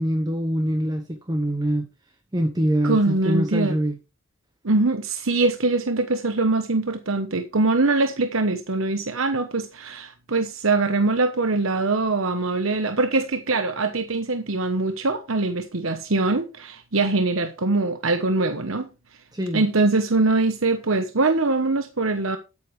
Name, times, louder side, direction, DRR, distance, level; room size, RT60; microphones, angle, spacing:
voice 1, 0.0-1.9 2.3-3.9 19.3-19.6, equal, 20° right, 1.0 m, -24 dB
voice 2, 2.8-3.7 4.6-18.9 19.5-22.4, right 3 dB, 75° right, 1.1 m, -23 dB
13.0 x 8.5 x 3.3 m
head